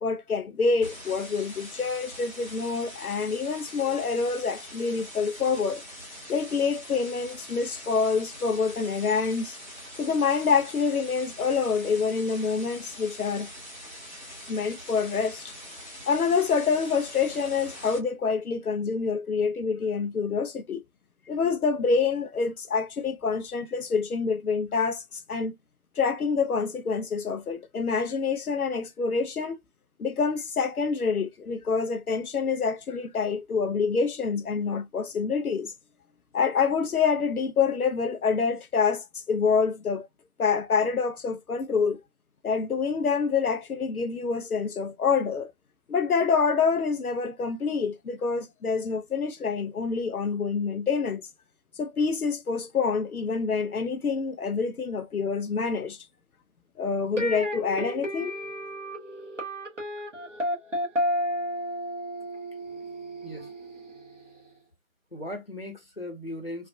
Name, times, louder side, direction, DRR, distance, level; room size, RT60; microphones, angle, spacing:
voice 1, 0.0-5.8 6.3-9.6 10.0-13.5 14.5-15.5 16.1-20.8 21.3-25.5 26.0-29.6 30.0-35.7 36.3-40.1 40.4-42.0 42.4-45.5 45.9-51.2 51.8-56.0 56.8-58.4, left 5 dB, 85° left, 0.6 m, -26 dB
sound 1, 0.8-18.0, equal, 35° right, 1.2 m, -43 dB
sound 2, 57.2-64.3, equal, 55° right, 1.2 m, -32 dB
voice 2, 65.1-66.7, left 1 dB, 45° left, 0.8 m, -38 dB
3.2 x 2.3 x 2.5 m
figure-of-eight pair, 175°, 43 cm